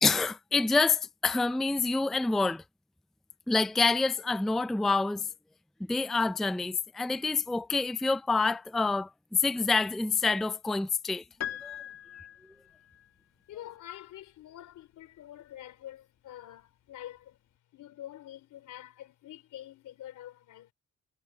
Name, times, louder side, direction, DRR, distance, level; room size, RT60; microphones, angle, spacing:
voice 1, 0.0-2.6 3.5-5.3 5.8-11.2 11.6-11.8, left 3 dB, ahead, 0.4 m, -27 dB
Piano, 11.4-13.1, left 11 dB, 55° left, 1.7 m, -40 dB
voice 2, 13.5-17.4 17.7-20.7, left 12 dB, 80° left, 4.1 m, -46 dB
cardioid pair, 90°, 30 cm